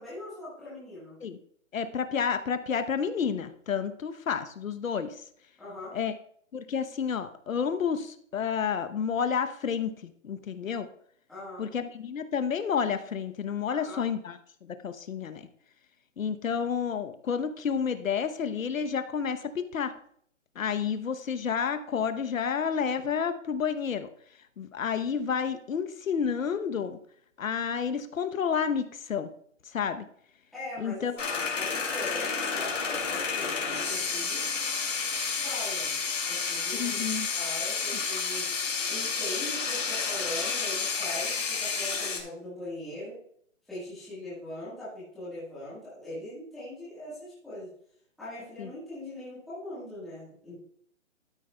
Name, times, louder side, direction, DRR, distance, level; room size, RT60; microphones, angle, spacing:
voice 1, 0.0-1.2 5.6-6.0 11.3-11.7 13.7-14.0 30.5-34.5 35.0-35.1 35.4-36.0 36.3-37.0 37.3-38.5 38.9-43.1 43.7-47.7 48.2-50.6, left 1 dB, ahead, -13 dB, 1.5 m, -41 dB
voice 2, 1.7-5.2 5.9-6.1 6.5-10.9 11.6-15.5 16.2-19.9 20.5-24.1 24.6-27.0 27.4-29.3 29.6-30.0 30.8-31.1 36.7-37.3 48.6-48.7, left 7 dB, 85° left, 10 dB, 0.9 m, -30 dB
sound 1, 31.2-42.2, left 5 dB, 70° left, 2.7 m, -30 dB
12.5 x 9.1 x 2.2 m, 0.64 s
hypercardioid pair, 180°, 39 cm